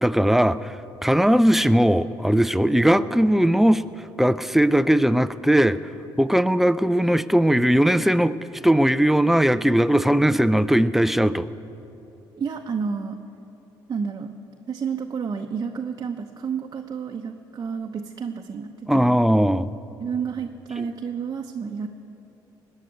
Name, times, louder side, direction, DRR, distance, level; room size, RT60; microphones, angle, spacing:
voice 1, 0.0-3.8 4.2-5.8 6.2-8.4 8.6-11.5 18.9-19.7 20.8-20.9, equal, 5° right, 14 dB, 0.5 m, -19 dB
voice 2, 12.4-13.2 13.9-14.3 14.7-19.2 20.0-21.9, right 6 dB, 40° right, 2 dB, 0.9 m, -30 dB
19.0 x 6.5 x 9.6 m, 2.9 s
supercardioid pair, 70°, 10 cm